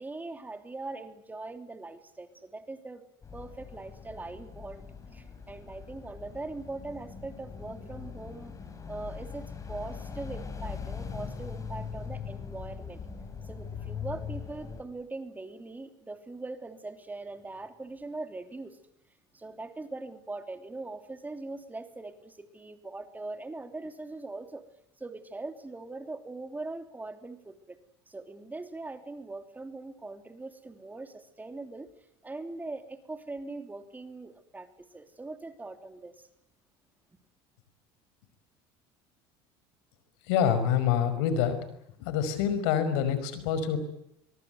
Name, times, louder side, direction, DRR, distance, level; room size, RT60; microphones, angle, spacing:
voice 1, 0.0-3.0 3.3-4.8 5.1-8.5 8.9-13.0 13.4-18.8 19.3-24.7 25.0-27.8 28.1-31.9 32.2-36.3, right 2 dB, 15° right, 8 dB, 3.0 m, -41 dB
sound 1, 3.2-14.8, left 6 dB, 25° left, 5.5 m, -41 dB
voice 2, 40.3-41.6 42.0-43.8, left 8 dB, 85° left, 12 dB, 5.5 m, -26 dB
24.0 x 22.5 x 9.4 m, 0.79 s
supercardioid pair, 110°, 12 cm